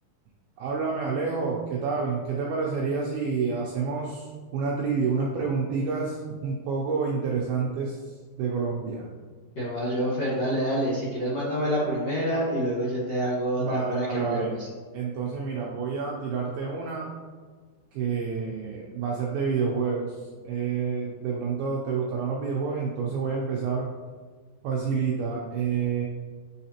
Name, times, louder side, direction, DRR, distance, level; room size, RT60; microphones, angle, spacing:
voice 1, 0.6-9.1 13.6-14.6 14.9-17.1 17.9-23.9 24.6-26.1, right 5 dB, 85° right, -2 dB, 2.2 m, -29 dB
voice 2, 9.5-14.7, equal, 75° left, -9 dB, 1.5 m, -27 dB
9.1 x 4.0 x 2.9 m, 1.5 s
omnidirectional pair, 5.1 m